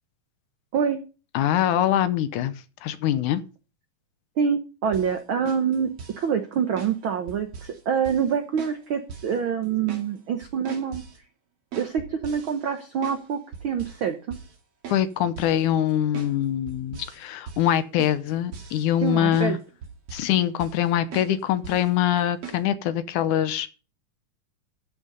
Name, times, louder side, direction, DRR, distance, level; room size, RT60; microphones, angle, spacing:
voice 1, 1.3-2.5 2.8-3.4 14.9-19.6 20.1-23.7, left 11 dB, 75° left, 13 dB, 2.2 m, -23 dB
voice 2, 4.4-11.0 11.8-14.4 19.0-19.6, right 7 dB, 75° right, 7 dB, 1.2 m, -26 dB
sound 1, 4.9-5.1 5.5-6.3 6.8-7.0 7.3-7.8 8.0-8.3 8.6-8.8 9.1-9.4 9.6-10.1 10.4-11.2 11.7-13.3 13.5-14.0 14.3-14.6 14.8-15.0 15.4-15.6 16.1-16.3 16.7-17.2 17.5-17.7 18.0-19.1 19.3-19.5 19.8-20.3 20.6-20.9 21.1-21.3 21.6-21.9 22.4-22.6, right 6 dB, 50° right, 3.1 m, -40 dB
13.5 x 6.4 x 5.3 m, 0.34 s
omnidirectional pair, 3.7 m